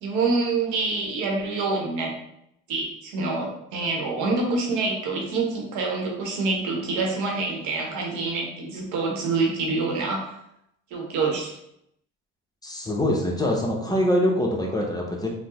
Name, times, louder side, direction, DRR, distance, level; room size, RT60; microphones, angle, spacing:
voice 1, 0.0-2.2 2.7-10.3 10.9-11.6, right 3 dB, 75° right, 0 dB, 1.0 m, -26 dB
voice 2, 12.6-15.3, left 1 dB, 10° left, -1 dB, 0.8 m, -24 dB
3.5 x 2.1 x 3.0 m, 0.78 s
supercardioid pair, 70°, 31 cm